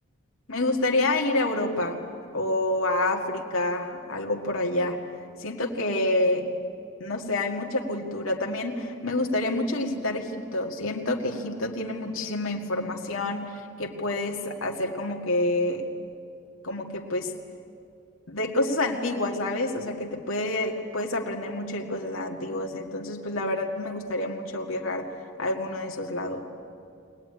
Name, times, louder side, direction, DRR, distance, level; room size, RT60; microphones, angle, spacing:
voice 1, 0.5-2.0 2.3-5.0 5.4-6.5 7.0-15.8 16.6-17.3 18.3-25.1 25.4-26.4, left 2 dB, 85° left, 1 dB, 2.0 m, -28 dB
23.5 x 19.0 x 9.8 m, 2.6 s
head